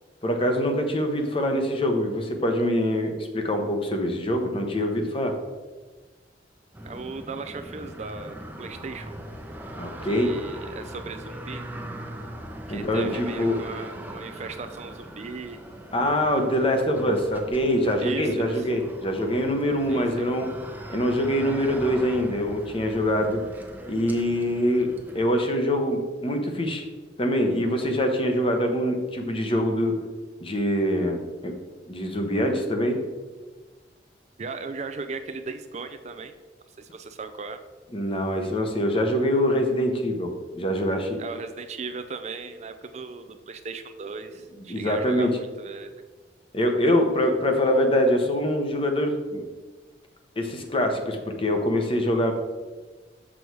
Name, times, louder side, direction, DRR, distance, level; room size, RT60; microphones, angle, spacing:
voice 1, 0.2-5.3 9.8-10.3 12.7-13.6 15.9-20.5 20.9-23.4 23.9-24.9 25.1-26.9 27.2-30.0 30.4-31.5 31.9-33.1 37.9-41.2 44.7-45.3 46.5-49.4 50.4-52.3, equal, 30° left, 4 dB, 0.9 m, -24 dB
sound 1, 6.7-25.2, right 1 dB, 10° right, 0.7 m, -40 dB
voice 2, 6.8-9.1 10.0-11.6 12.7-15.6 18.0-18.7 19.9-20.3 34.4-36.3 36.8-37.6 41.2-45.9, right 4 dB, 40° right, 9 dB, 0.4 m, -37 dB
6.8 x 6.2 x 4.6 m, 1.3 s
head